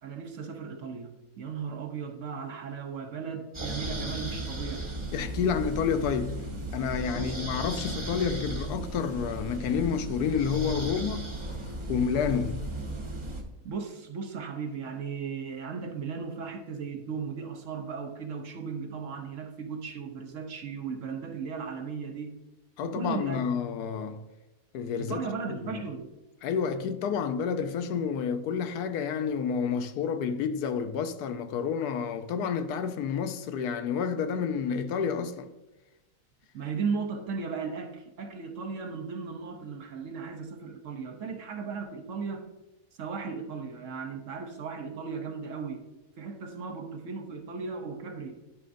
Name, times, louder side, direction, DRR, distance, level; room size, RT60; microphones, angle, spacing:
voice 1, 0.0-4.9 7.1-7.4 13.6-22.3 22.8-23.4 25.0-26.1 36.5-42.5 43.0-45.9 46.2-48.4, right 5 dB, 60° right, 1.0 m, -36 dB
sound 1, 3.5-13.4, right 2 dB, 25° right, 0.7 m, -36 dB
voice 2, 5.1-11.3 11.9-12.7 22.8-24.3 24.7-25.2 25.6-25.8 26.4-35.5, left 6 dB, 85° left, 1.2 m, -29 dB
11.0 x 5.2 x 2.5 m
omnidirectional pair, 1.6 m